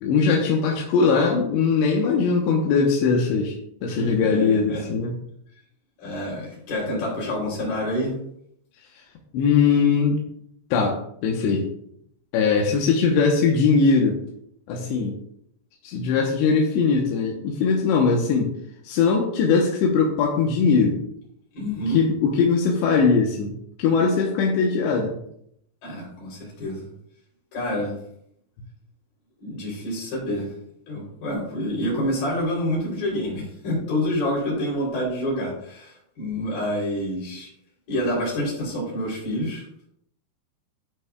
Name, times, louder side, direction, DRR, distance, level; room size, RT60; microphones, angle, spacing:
voice 1, 0.0-3.5 3.8-5.1 9.3-10.2 10.7-11.7 12.3-14.2 14.7-15.2 15.8-18.5 18.9-21.0 21.9-25.2, left 5 dB, 85° left, -1 dB, 3.2 m, -20 dB
voice 2, 4.0-4.8 6.0-8.2 21.5-22.0 25.8-26.8 27.5-28.0 29.4-30.5 30.9-37.5 37.9-39.6, equal, 55° left, -4 dB, 5.0 m, -27 dB
14.0 x 5.8 x 2.3 m, 0.71 s
omnidirectional pair, 4.9 m